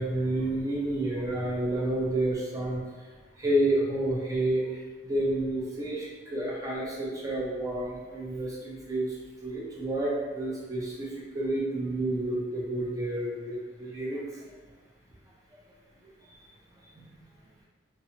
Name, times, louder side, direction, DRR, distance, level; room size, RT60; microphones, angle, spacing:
voice 1, 0.0-2.8 3.4-4.7 5.0-9.1 9.4-11.1 11.3-14.2 17.0-17.1, right 1 dB, 15° right, -4 dB, 0.4 m, -29 dB
2.5 x 2.0 x 2.9 m, 1.4 s
head